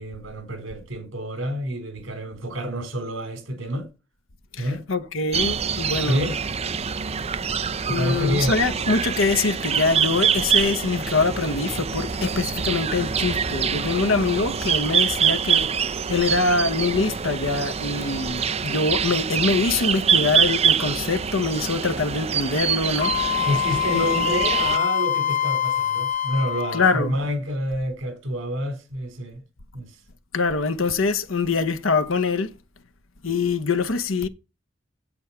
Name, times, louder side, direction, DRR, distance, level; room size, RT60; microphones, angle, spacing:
voice 1, 0.0-3.9 4.6-4.8 6.1-6.4 7.9-8.6 23.4-29.4 29.7-30.0, equal, 70° right, 4.0 m, -28 dB
voice 2, 4.5-6.4 7.9-23.4 23.9-24.2 26.7-27.2 30.3-32.5 33.2-34.3, left 4 dB, 75° left, 1.2 m, -24 dB
sound 1, 5.3-24.8, right 7 dB, 30° right, 0.6 m, -25 dB
Wind instrument woodwind instrument, 23.0-27.1, left 10 dB, 40° left, 0.9 m, -24 dB
8.2 x 8.1 x 5.7 m
head